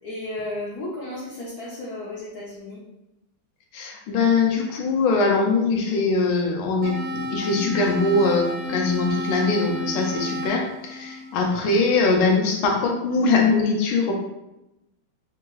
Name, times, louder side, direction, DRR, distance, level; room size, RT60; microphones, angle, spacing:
voice 1, 0.0-2.8, left 1 dB, 60° left, -6 dB, 1.0 m, -33 dB
voice 2, 3.7-14.1, left 3 dB, 80° left, 1 dB, 1.4 m, -22 dB
sound 1, 6.8-11.9, left 1 dB, 75° right, 1.4 m, -32 dB
3.7 x 2.7 x 3.0 m, 0.90 s
omnidirectional pair, 2.3 m